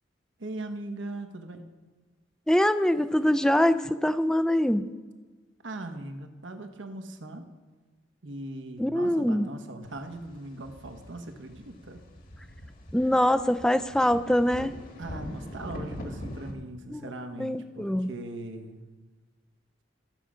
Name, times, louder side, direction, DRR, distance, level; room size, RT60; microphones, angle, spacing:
voice 1, 0.4-1.7 5.6-7.5 8.2-12.0 13.0-13.1 15.0-18.9, right 2 dB, 75° right, 6 dB, 1.1 m, -40 dB
voice 2, 2.5-4.9 8.8-9.5 12.9-14.7 16.9-17.0 17.4-18.1, left 1 dB, 5° left, 11 dB, 0.4 m, -24 dB
sound 1, 9.8-16.5, equal, 45° left, 1.6 m, -42 dB
13.5 x 7.2 x 5.0 m, 1.3 s
head